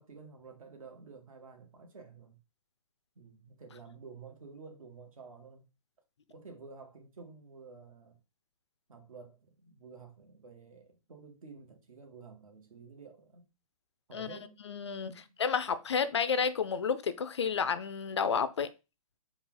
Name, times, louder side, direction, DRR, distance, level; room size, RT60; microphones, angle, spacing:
voice 1, 0.0-2.4 3.1-5.6 6.3-8.2 8.9-13.4 14.1-14.6 15.0-15.3, right 4 dB, 65° right, 1.4 m, -51 dB
voice 2, 14.7-15.1 15.4-18.7, left 6 dB, 50° left, 0.4 m, -30 dB
4.2 x 2.4 x 3.8 m
hypercardioid pair, 170°, 19 cm